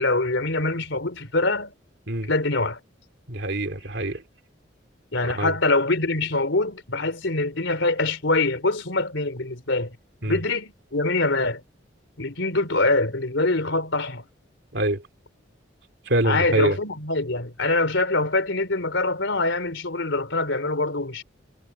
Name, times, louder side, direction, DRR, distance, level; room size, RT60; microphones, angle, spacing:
voice 1, 0.0-1.7 2.3-2.8 5.1-10.0 10.3-11.6 12.2-14.2 16.2-21.2, left 2 dB, 80° left, 3.6 m, -24 dB
voice 2, 3.3-4.2 5.3-5.5 10.2-10.4 14.7-15.0 16.1-16.8, right 1 dB, 65° right, 3.2 m, -25 dB
head